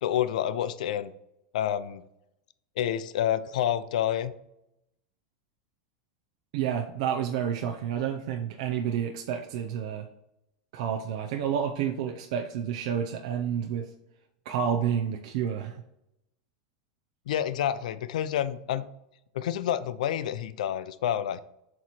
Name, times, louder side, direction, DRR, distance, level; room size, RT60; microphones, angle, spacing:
voice 1, 0.0-1.1 1.5-2.0 2.8-4.3 17.3-18.9 19.3-21.4, left 10 dB, 80° left, 14 dB, 0.4 m, -28 dB
voice 2, 6.5-10.1 10.7-13.9 14.5-15.8, right 8 dB, 55° right, 4 dB, 0.5 m, -30 dB
7.4 x 3.1 x 4.1 m, 0.83 s
supercardioid pair, 165°, 4 cm